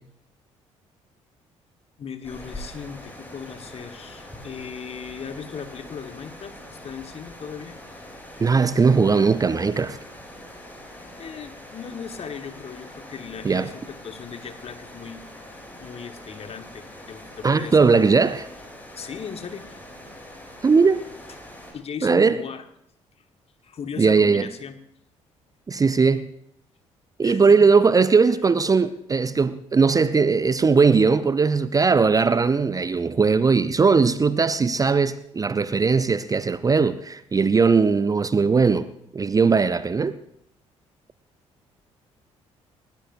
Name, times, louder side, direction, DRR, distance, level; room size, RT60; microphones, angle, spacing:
voice 1, 2.0-7.8 11.2-18.1 18.9-19.8 21.7-22.6 23.6-24.8 27.2-27.6, left 6 dB, 40° left, 1.5 m, -37 dB
sound 1, 2.2-21.7, left 1 dB, 10° left, 5.9 m, -43 dB
voice 2, 8.4-10.0 13.4-13.7 17.4-18.4 20.6-21.0 22.0-22.4 24.0-24.5 25.7-26.3 27.2-38.9 39.1-40.2, right 4 dB, 20° right, 0.6 m, -19 dB
29.0 x 13.0 x 2.6 m
figure-of-eight pair, 45°, 16 cm